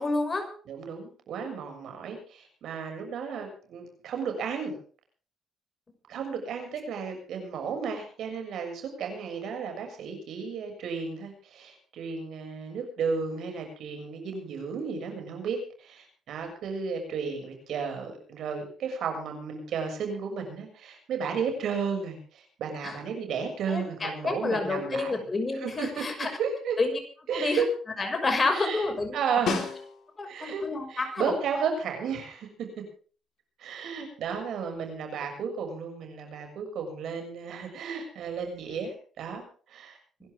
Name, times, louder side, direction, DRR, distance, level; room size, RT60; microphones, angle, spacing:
voice 1, 0.0-0.5 22.8-23.0 23.7-26.3 26.8-27.0 27.3-27.6 28.0-29.2 29.5-29.6 30.2-31.3, left 3 dB, 30° left, 5 dB, 6.0 m, -29 dB
voice 2, 0.7-4.7 6.1-25.2 25.5-26.8 27.3-27.7 28.5-28.8 29.1-29.7 30.3-30.6 30.9-32.7 33.6-40.0, right 6 dB, 75° right, 4 dB, 6.9 m, -33 dB
Snare drum, 29.5-30.4 34.8-34.9, left 6 dB, 65° left, 4.2 m, -32 dB
26.0 x 12.0 x 3.7 m, 0.42 s
cardioid pair, 90°, 0 cm